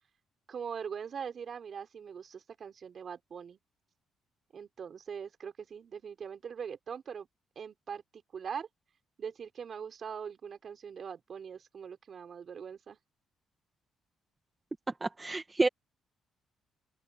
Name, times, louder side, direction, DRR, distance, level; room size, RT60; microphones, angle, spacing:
voice 1, 0.5-3.6 4.5-7.3 7.5-8.7 9.2-13.0, right 7 dB, 50° right, 4.7 m, -42 dB
voice 2, 15.0-15.7, right 2 dB, 20° right, 1.3 m, -29 dB
open air
cardioid pair, 110°, 0 cm